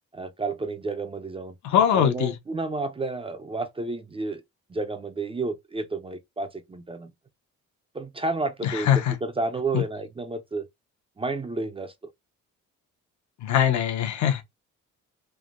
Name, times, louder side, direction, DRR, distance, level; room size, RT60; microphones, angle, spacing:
voice 1, 0.1-1.5 1.9-4.4 4.7-7.1 7.9-10.7 11.2-11.9, right 3 dB, 20° right, 0.4 m, -31 dB
voice 2, 1.6-2.3 8.6-9.1 9.7-9.8 13.4-14.4, left 9 dB, 70° left, 0.8 m, -22 dB
3.3 x 2.1 x 2.4 m
cardioid pair, 90°, 30 cm